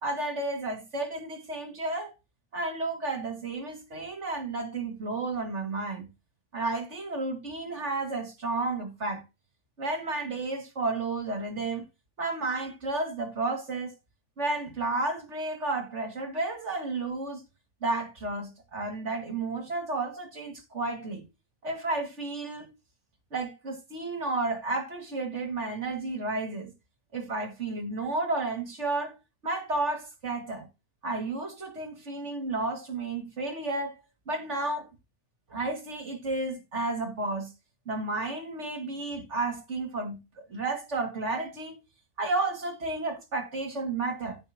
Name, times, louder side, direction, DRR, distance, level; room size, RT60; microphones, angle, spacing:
voice 1, 0.0-2.1 2.5-6.0 6.5-9.2 9.8-11.8 12.2-13.9 14.4-17.4 17.8-21.2 21.6-22.7 23.3-26.7 27.1-29.1 29.4-30.7 31.0-34.0 34.3-34.9 35.5-37.5 37.9-40.2 40.5-41.7 42.2-44.4, right 2 dB, 50° right, 2.7 m, -32 dB
14.5 x 5.7 x 2.9 m
omnidirectional pair, 1.6 m